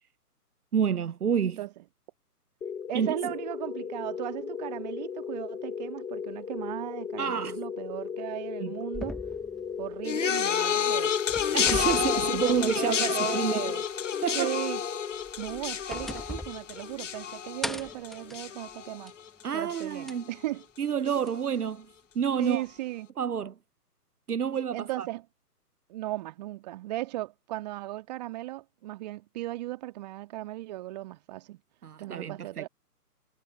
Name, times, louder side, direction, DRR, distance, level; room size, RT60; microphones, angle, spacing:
voice 1, 0.7-1.6 2.9-3.3 7.2-7.6 8.6-8.7 11.5-13.7 14.2-14.6 19.4-20.3 20.8-21.9 22.1-22.6 23.2-23.6 24.3-25.1 31.8-32.7, right 7 dB, 70° right, 0.7 m, -29 dB
sound 1, 2.6-15.7, left 6 dB, 85° left, 0.8 m, -37 dB
voice 2, 2.9-9.2 9.8-11.2 11.6-13.8 14.4-14.8 15.4-19.1 19.5-20.6 22.4-23.1 24.7-25.2 25.9-31.6 32.0-32.7, right 16 dB, 25° right, 2.0 m, -36 dB
sound 2, 8.9-10.7 11.0-13.1 13.4-13.5 15.1-17.2 17.6-19.3 20.1-20.2 21.3-21.4, left 1 dB, ahead, 1.1 m, -40 dB
sound 3, 10.0-19.4 19.7-20.2 21.1-21.2, left 8 dB, 50° left, 1.3 m, -30 dB
figure-of-eight pair, 135°, 47 cm